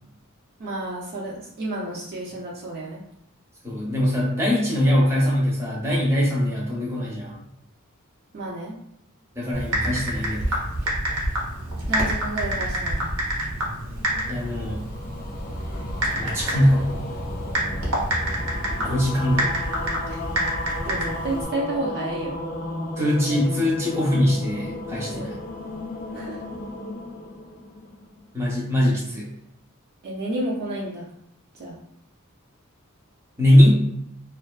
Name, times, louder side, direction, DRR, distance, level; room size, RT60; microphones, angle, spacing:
voice 1, 0.6-3.0 8.3-8.8 11.9-13.1 20.1-20.2 20.9-22.4 25.0-25.3 26.1-26.4 30.0-31.0 31.5-31.8, right 1 dB, 45° right, -4 dB, 0.4 m, -31 dB
voice 2, 3.6-7.4 9.4-10.6 14.3-14.8 16.2-16.8 18.8-19.6 23.0-25.3 28.3-29.3 33.4-33.8, left 1 dB, 10° right, -5 dB, 0.7 m, -21 dB
Typing, 9.5-21.4, right 1 dB, 75° right, 0.8 m, -28 dB
sound 1, 13.8-28.3, left 2 dB, 40° left, 0.4 m, -34 dB
2.5 x 2.2 x 2.2 m, 0.75 s
head